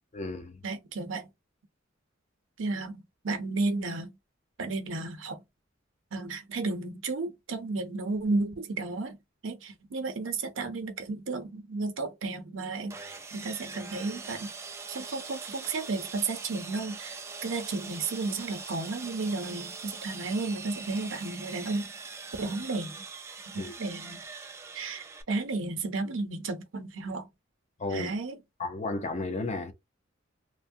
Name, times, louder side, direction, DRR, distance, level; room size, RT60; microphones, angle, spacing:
voice 1, 0.1-0.6 23.5-23.7 27.8-28.1 28.6-29.7, left 2 dB, 35° left, 0.6 m, -33 dB
voice 2, 0.6-1.3 2.6-4.2 4.6-5.4 6.1-9.2 9.4-14.5 14.9-21.9 22.4-23.0 23.5-24.2 24.7-27.3 27.9-28.4, right 3 dB, 90° right, 0.7 m, -33 dB
Sawing, 12.9-25.2, right 4 dB, 15° right, 0.4 m, -42 dB
3.1 x 2.2 x 2.6 m
head